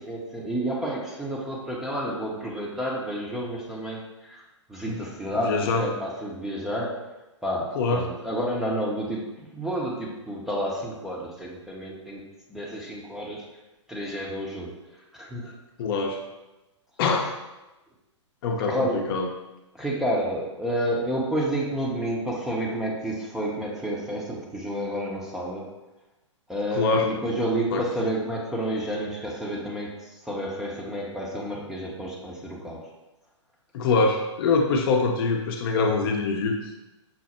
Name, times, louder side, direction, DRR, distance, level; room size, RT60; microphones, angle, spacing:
voice 1, 0.0-4.4 4.7-7.1 7.4-12.2 12.5-13.4 13.9-14.7 15.1-15.5 18.7-19.0 19.7-25.7 26.5-32.9, right 1 dB, 5° right, -3 dB, 0.7 m, -30 dB
voice 2, 5.4-5.8 7.7-8.0 15.8-16.2 17.0-17.3 18.4-19.3 26.8-27.1 27.7-28.1 33.7-36.5, left 4 dB, 50° left, 2 dB, 0.7 m, -24 dB
5.8 x 2.1 x 4.2 m, 1.0 s
hypercardioid pair, 125°, 16 cm